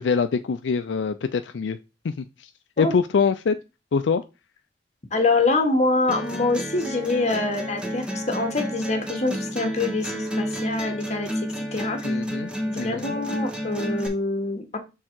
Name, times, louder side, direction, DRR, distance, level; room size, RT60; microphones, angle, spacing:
voice 1, 0.0-1.8 2.0-2.3 2.8-3.6 3.9-4.2 12.0-12.5 12.8-13.2, left 5 dB, 80° left, 10 dB, 0.4 m, -24 dB
voice 2, 5.1-12.0 12.7-14.8, left 3 dB, 40° left, 5 dB, 1.4 m, -25 dB
sound 1, 6.1-14.1, equal, 5° right, 1.2 m, -30 dB
6.4 x 3.6 x 4.5 m, 0.27 s
head